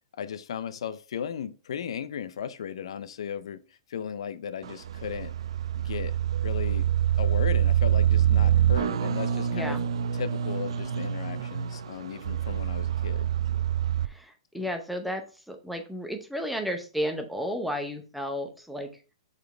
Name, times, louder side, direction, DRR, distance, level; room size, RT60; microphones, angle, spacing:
voice 1, 0.1-5.3 5.8-6.2 6.4-6.9 7.2-9.8 10.1-13.3 14.6-14.7, left 8 dB, 75° left, 0.5 m, -36 dB
sound 1, 4.6-14.1, right 10 dB, 80° right, 0.4 m, -26 dB
voice 2, 9.5-9.8 14.0-18.9, equal, ahead, 0.7 m, -33 dB
5.2 x 4.1 x 4.4 m
hypercardioid pair, 160°, 3 cm